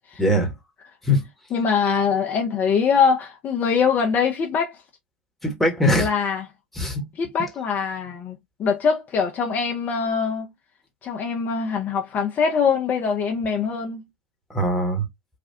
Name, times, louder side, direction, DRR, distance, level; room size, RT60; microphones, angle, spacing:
voice 1, 0.2-0.5 1.0-1.2 5.4-6.1 6.7-7.0 14.5-15.0, equal, 5° left, 1.3 m, -21 dB
voice 2, 1.5-4.8 5.9-6.4 7.2-10.5 11.0-14.0, left 6 dB, 30° left, 0.7 m, -23 dB
3.3 x 2.3 x 2.6 m
figure-of-eight pair, 80°, 6 cm